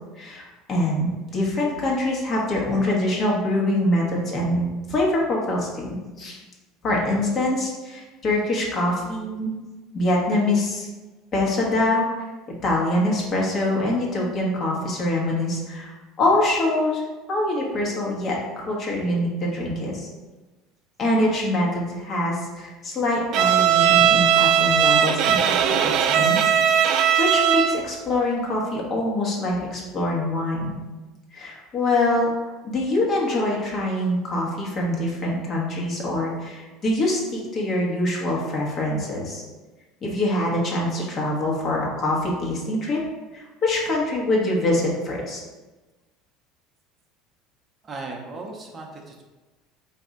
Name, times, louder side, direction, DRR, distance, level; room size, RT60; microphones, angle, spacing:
voice 1, 0.2-6.4 6.8-9.5 9.9-10.9 11.3-12.3 12.6-17.0 17.3-20.1 21.0-26.5 27.2-30.8 31.3-32.3 32.6-39.4 40.0-43.0 43.3-45.4, left 1 dB, 45° left, -3 dB, 1.2 m, -24 dB
Bowed string instrument, 23.3-27.9, right 9 dB, 60° right, 0.3 m, -18 dB
voice 2, 47.8-49.2, right 3 dB, 35° right, 1 dB, 0.7 m, -36 dB
4.0 x 2.7 x 3.6 m, 1.2 s
hypercardioid pair, 85°, 0 cm